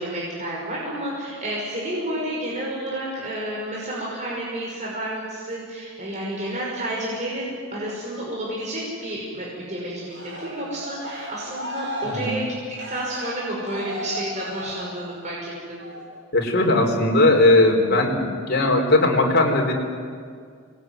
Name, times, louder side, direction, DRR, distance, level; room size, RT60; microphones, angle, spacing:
voice 1, 0.0-12.4 12.9-15.8, right 1 dB, 35° right, -5 dB, 6.0 m, -30 dB
Cheering, 10.1-15.3 15.8-16.2, equal, 60° right, 6.6 m, -35 dB
voice 2, 12.0-12.4 16.3-19.7, left 2 dB, 50° left, 1 dB, 4.2 m, -18 dB
24.5 x 21.0 x 9.6 m, 2.1 s
head